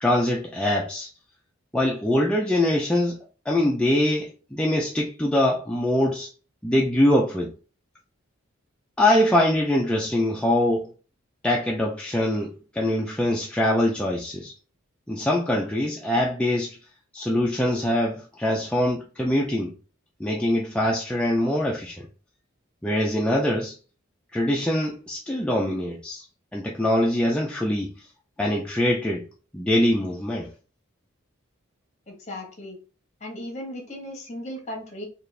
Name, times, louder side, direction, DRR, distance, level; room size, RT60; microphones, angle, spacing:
voice 1, 0.0-1.1 1.7-3.2 3.5-6.3 6.6-7.5 9.0-10.9 11.4-14.5 15.1-16.8 17.1-19.7 20.2-22.1 22.8-23.7 24.3-26.2 26.5-27.9 28.4-29.2 29.5-30.5, left 1 dB, 5° left, 0.4 m, -23 dB
voice 2, 32.1-32.8 33.2-35.1, left 1 dB, 35° left, 1.3 m, -36 dB
4.2 x 2.4 x 3.3 m
head